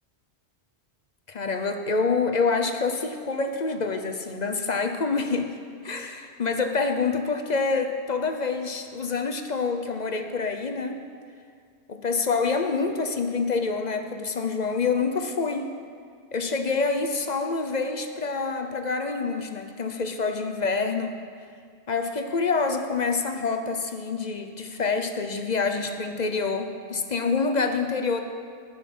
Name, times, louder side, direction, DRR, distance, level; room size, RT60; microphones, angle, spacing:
voice 1, 1.3-5.5 5.8-11.0 11.9-15.7 16.3-21.2 21.9-28.2, left 4 dB, 45° left, 6 dB, 0.8 m, -27 dB
18.5 x 6.4 x 5.5 m, 2.1 s
omnidirectional pair, 1.1 m